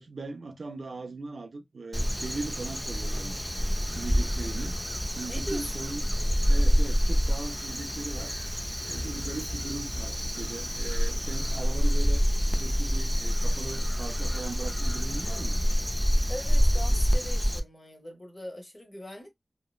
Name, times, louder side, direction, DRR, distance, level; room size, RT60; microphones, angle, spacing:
voice 1, 0.0-3.5 3.8-4.8 5.1-6.1 6.5-8.3 8.9-15.6, right 3 dB, 75° right, 0.4 m, -39 dB
Crow, 1.9-17.6, equal, ahead, 0.4 m, -27 dB
voice 2, 5.3-5.7 16.3-19.3, equal, 35° left, 1.0 m, -40 dB
2.8 x 2.0 x 2.3 m
wide cardioid pair, 60°, 0 cm